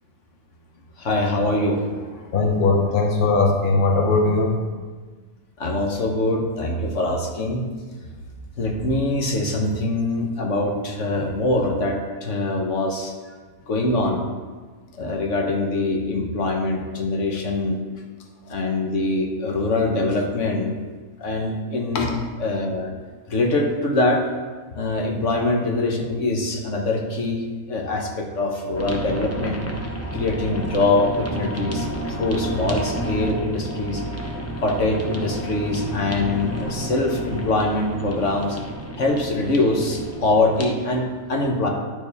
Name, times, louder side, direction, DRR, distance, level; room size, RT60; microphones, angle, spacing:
voice 1, 1.0-2.3 5.6-7.6 8.6-13.4 13.7-14.3 15.0-17.8 18.5-20.8 21.2-22.9 23.3-24.2 24.7-29.6 30.1-34.0 34.6-38.6 39.0-41.7, left 2 dB, 65° left, 1 dB, 1.4 m, -23 dB
voice 2, 2.3-4.9 21.9-22.1, left 3 dB, 45° left, 1 dB, 1.0 m, -20 dB
sound 1, 28.7-40.7, right 1 dB, 15° left, 0.8 m, -31 dB
10.5 x 6.9 x 3.4 m, 1.4 s
omnidirectional pair, 1.4 m